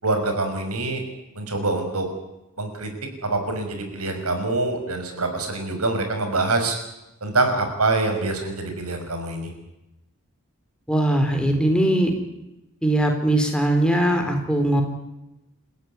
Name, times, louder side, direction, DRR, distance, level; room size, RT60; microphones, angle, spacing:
voice 1, 0.0-1.0 1.3-2.1 2.6-2.9 3.2-6.8 7.2-9.5, right 2 dB, 85° right, 6 dB, 5.9 m, -25 dB
voice 2, 10.9-12.1 12.8-14.8, right 1 dB, 5° left, 4 dB, 4.0 m, -20 dB
29.0 x 15.5 x 9.8 m, 0.94 s
head